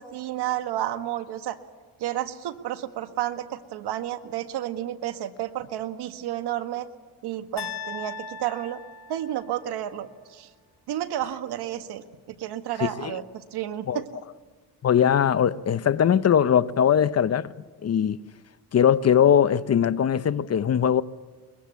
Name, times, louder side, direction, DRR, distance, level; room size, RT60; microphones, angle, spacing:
voice 1, 0.0-1.6 2.0-6.9 7.2-8.8 9.1-10.5 10.9-14.1, right 12 dB, 85° right, 1.7 m, -31 dB
sound 1, 7.6-9.7, left 5 dB, 80° left, 2.6 m, -38 dB
voice 2, 12.8-13.2 13.9-14.0 14.8-17.5 17.8-18.2 18.7-21.0, left 8 dB, 40° left, 0.8 m, -21 dB
23.0 x 23.0 x 8.3 m
cardioid pair, 110°, 39 cm